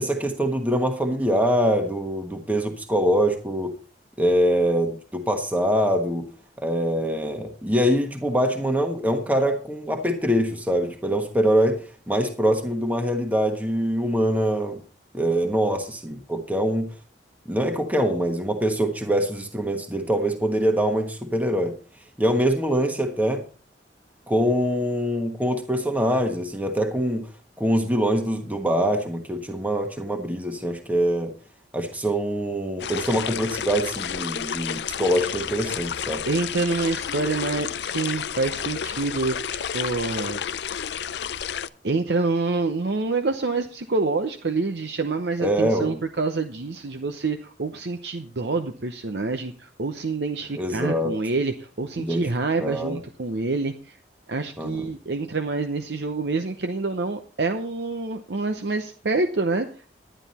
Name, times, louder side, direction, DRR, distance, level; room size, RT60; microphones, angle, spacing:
voice 1, 0.0-3.7 4.2-6.2 6.6-11.8 12.1-14.8 15.1-16.9 17.5-21.7 22.2-23.4 24.3-27.3 27.6-31.3 31.7-36.2 45.4-46.0 50.5-51.1 52.0-52.2 52.6-53.0 54.6-54.9, equal, 10° right, 4 dB, 1.3 m, -24 dB
sound 1, 32.8-41.7, left 8 dB, 70° left, 0.5 m, -31 dB
voice 2, 36.3-39.4 39.7-40.4 41.8-53.7 54.3-59.7, right 3 dB, 70° right, 7 dB, 0.8 m, -27 dB
11.0 x 10.0 x 4.2 m, 0.39 s
head